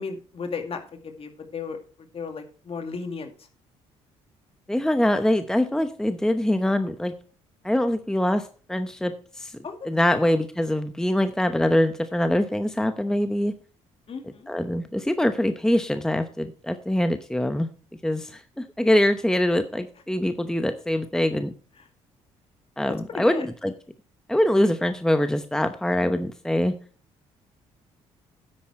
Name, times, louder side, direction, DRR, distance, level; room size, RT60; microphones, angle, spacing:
voice 1, 0.0-1.8 2.1-3.3 9.6-9.8 10.1-10.3 14.1-14.5 23.1-23.5, left 5 dB, 45° left, 5 dB, 2.2 m, -34 dB
voice 2, 4.7-7.1 7.6-9.5 9.8-13.5 14.2-17.7 18.0-21.5 22.8-23.7 24.3-26.7, left 1 dB, 5° left, 9 dB, 0.9 m, -24 dB
9.8 x 8.4 x 4.4 m, 0.41 s
supercardioid pair, 65°, 13 cm